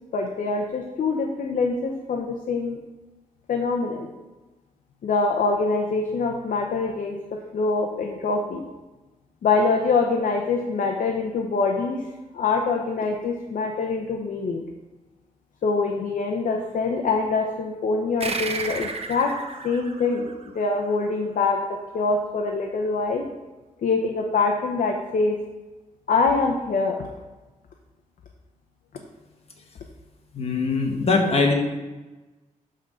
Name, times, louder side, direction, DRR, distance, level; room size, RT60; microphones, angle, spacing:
voice 1, 0.1-2.8 3.5-4.1 5.0-8.6 9.4-12.1 12.3-14.6 15.6-19.3 19.6-20.3 20.5-23.3 23.8-25.4 26.1-27.0, left 4 dB, 70° left, 2 dB, 0.9 m, -24 dB
sound 1, 18.2-21.2, right 4 dB, 45° right, 1.0 m, -33 dB
voice 2, 30.3-31.5, left 3 dB, 45° left, 1 dB, 1.6 m, -21 dB
11.5 x 3.9 x 5.6 m, 1.2 s
cardioid pair, 100°, 14 cm